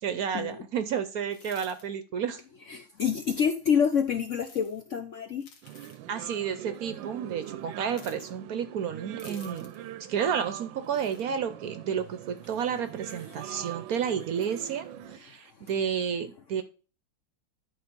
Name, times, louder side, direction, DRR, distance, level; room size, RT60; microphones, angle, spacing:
voice 1, 0.0-2.4 6.1-9.7 10.1-16.6, right 7 dB, 65° right, 11 dB, 1.0 m, -31 dB
sound 1, 1.3-1.8 4.3-4.8 5.4-6.0 7.9-8.3 9.2-9.8 10.8-11.2, left 5 dB, 80° left, 2.1 m, -52 dB
voice 2, 2.7-5.4, left 7 dB, 60° left, 6 dB, 0.8 m, -27 dB
sound 2, 5.6-15.2, right 12 dB, 85° right, 1.3 m, -42 dB
11.0 x 3.8 x 5.2 m, 0.35 s
omnidirectional pair, 2.0 m